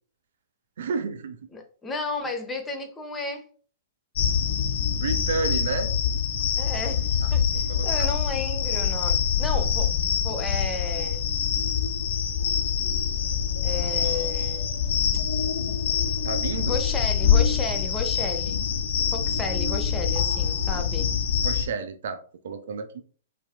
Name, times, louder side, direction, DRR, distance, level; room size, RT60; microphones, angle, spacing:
voice 1, 0.8-1.4 4.9-5.9 7.5-8.1 16.2-16.8 21.4-23.0, right 5 dB, 65° right, 0.6 m, -31 dB
voice 2, 1.5-3.5 6.6-7.1 7.3-9.9 10.2-11.2 13.6-14.7 15.1-15.2 16.7-18.6 19.1-21.1, left 3 dB, 15° left, 0.7 m, -33 dB
sound 1, 4.2-21.7, left 7 dB, 60° left, 0.6 m, -25 dB
4.4 x 3.3 x 2.2 m
figure-of-eight pair, 110°, 0 cm